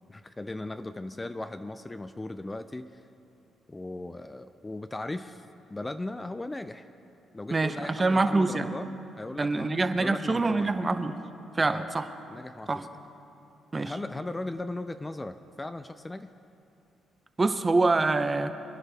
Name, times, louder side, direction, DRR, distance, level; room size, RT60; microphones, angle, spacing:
voice 1, 0.1-2.9 3.7-5.4 5.7-6.9 7.3-9.7 10.0-10.8 11.6-11.9 12.3-12.9 13.8-16.3, left 2 dB, 15° left, 10 dB, 0.4 m, -37 dB
voice 2, 7.5-8.7 9.4-11.2 11.6-12.1 12.7-12.8 13.7-13.9 17.4-18.5, right 3 dB, 25° right, 9 dB, 0.7 m, -25 dB
23.5 x 11.0 x 3.4 m, 2.8 s
cardioid pair, 90°, 0 cm